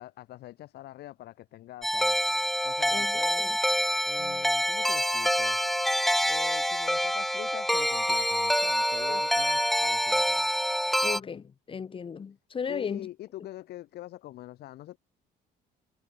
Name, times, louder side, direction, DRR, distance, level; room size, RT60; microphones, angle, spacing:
voice 1, 0.0-2.2 2.6-3.6 4.1-5.8 6.3-10.5 12.7-15.0, left 15 dB, 75° left, 2.6 m, -44 dB
sound 1, 1.8-11.2, equal, ahead, 1.1 m, -26 dB
voice 2, 2.9-3.6 4.2-4.4 9.1-9.2 11.0-13.1, left 6 dB, 30° left, 1.4 m, -36 dB
cardioid pair, 110°, 17 cm